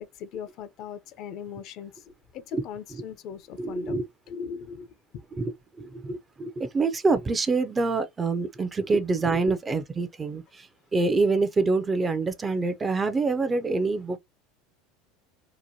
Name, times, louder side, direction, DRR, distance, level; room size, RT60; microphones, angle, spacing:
voice 1, 0.0-2.0 2.3-4.0 4.3-4.9 5.1-5.2 9.5-9.6, left 7 dB, 55° left, 0.5 m, -39 dB
voice 2, 3.6-4.1 5.4-14.2, right 3 dB, 20° right, 0.4 m, -26 dB
2.9 x 2.2 x 2.6 m
supercardioid pair, 105°, 0 cm